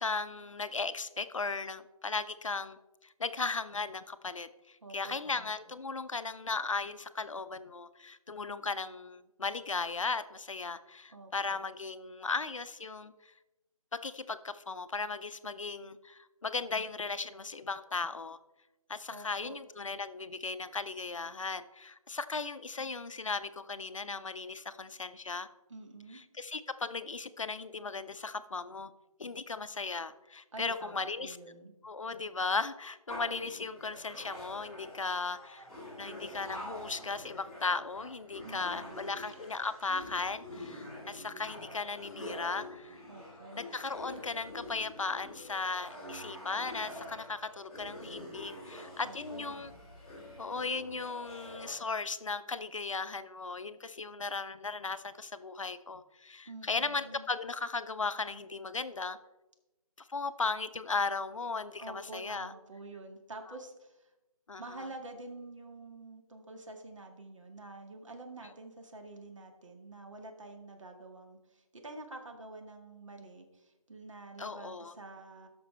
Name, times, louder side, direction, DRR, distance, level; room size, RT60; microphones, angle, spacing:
voice 1, 0.0-2.8 3.2-13.3 14.0-18.4 18.9-25.5 26.4-28.9 29.2-31.4 31.8-35.7 36.0-43.0 43.6-49.7 50.4-59.2 60.0-62.5 64.5-64.6 74.4-74.9, left 4 dB, 60° left, 13 dB, 0.6 m, -36 dB
voice 2, 4.8-5.5 11.1-11.6 19.1-19.6 25.7-26.2 30.5-31.7 38.4-39.1 43.1-43.6 49.0-49.5 56.5-57.2 61.8-64.1 64.6-75.5, right 2 dB, 55° right, 3 dB, 1.8 m, -48 dB
sound 1, 33.1-51.7, left 1 dB, 5° left, 2.7 m, -46 dB
13.0 x 6.0 x 3.4 m, 1.0 s
figure-of-eight pair, 160°, 19 cm